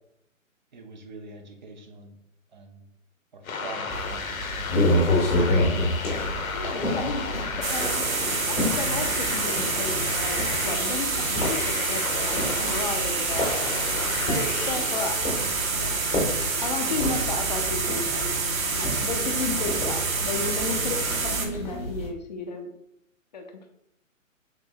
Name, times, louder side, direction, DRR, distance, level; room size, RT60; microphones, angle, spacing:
voice 1, 0.7-2.2 2.5-2.8 3.3-4.7 7.7-8.0 16.4-16.6, right 3 dB, 35° right, 5 dB, 0.5 m, -45 dB
sound 1, 3.4-17.1, left 5 dB, 85° left, 0.7 m, -34 dB
sound 2, 3.9-22.1, left 1 dB, 15° left, 0.8 m, -30 dB
voice 2, 6.1-7.3 7.6-8.1 8.5-13.7 14.3-15.2 15.8-16.0 16.6-22.7 23.3-23.7, left 4 dB, 35° left, 4 dB, 0.4 m, -34 dB
sound 3, 7.6-21.5, right 4 dB, 80° right, 0.8 m, -27 dB
3.6 x 2.9 x 2.8 m, 0.78 s
hypercardioid pair, 140°, 40 cm